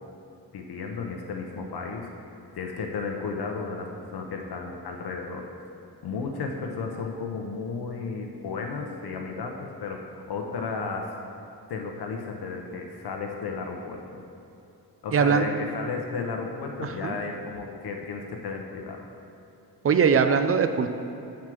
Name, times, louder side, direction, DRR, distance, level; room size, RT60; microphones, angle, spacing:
voice 1, 0.5-2.1 2.5-5.5 6.0-11.2 11.7-14.2 15.0-19.1, left 4 dB, 75° left, 2 dB, 0.8 m, -33 dB
voice 2, 15.1-15.4 16.8-17.2 19.8-20.9, right 6 dB, 35° right, 9 dB, 0.5 m, -21 dB
7.3 x 4.7 x 6.0 m, 2.8 s
cardioid pair, 90°, 39 cm